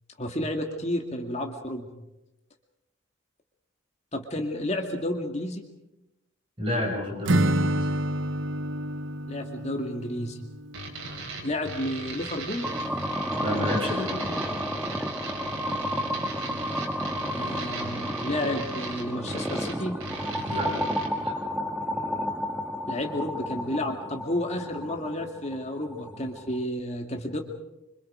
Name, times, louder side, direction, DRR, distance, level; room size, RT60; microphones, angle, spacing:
voice 1, 0.2-1.9 4.1-5.6 9.3-10.4 11.4-12.7 17.3-20.0 22.9-27.4, left 1 dB, 30° left, 3 dB, 2.2 m, -31 dB
voice 2, 6.6-7.9 13.4-14.4 20.5-20.7 21.2-21.4, left 1 dB, 25° right, -1 dB, 6.7 m, -30 dB
Acoustic guitar / Strum, 7.2-11.2, right 1 dB, 65° right, 0.8 m, -28 dB
sound 1, 10.7-21.1, right 2 dB, 85° right, 4.9 m, -38 dB
sound 2, 12.6-26.6, equal, 5° right, 1.3 m, -32 dB
26.0 x 25.5 x 5.1 m, 0.91 s
head